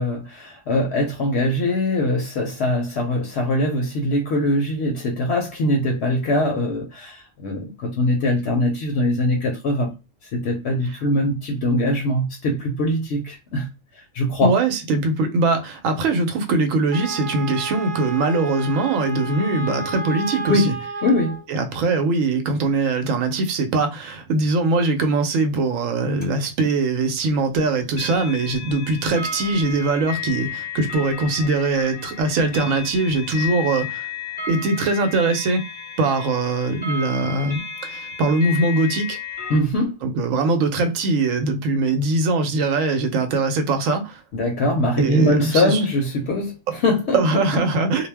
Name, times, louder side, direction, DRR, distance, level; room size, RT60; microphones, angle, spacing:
voice 1, 0.0-9.9 10.3-13.7 14.1-14.5 20.5-20.7 21.0-21.4 39.5-39.9 44.3-47.4, left 1 dB, 65° left, 0.8 m, -22 dB
voice 2, 14.4-20.7 21.5-34.1 34.5-35.6 36.0-39.2 40.0-44.2 45.0-45.8 47.1-48.1, right 3 dB, 85° right, 1.0 m, -21 dB
Wind instrument woodwind instrument, 16.9-21.5, right 2 dB, 55° right, 0.9 m, -32 dB
sound 1, 26.2-26.3 27.9-39.6, left 5 dB, 10° left, 0.6 m, -33 dB
2.3 x 2.0 x 3.3 m
omnidirectional pair, 1.3 m